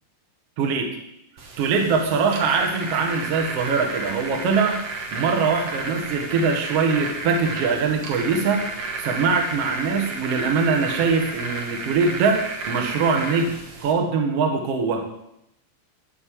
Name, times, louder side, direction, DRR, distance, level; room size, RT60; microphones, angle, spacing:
voice 1, 0.6-0.9 1.6-4.8 5.1-15.0, right 5 dB, 60° right, 2 dB, 1.6 m, -22 dB
sound 1, 1.4-13.9, right 3 dB, 80° right, 1.3 m, -32 dB
13.5 x 4.5 x 8.6 m, 0.81 s
omnidirectional pair, 5.0 m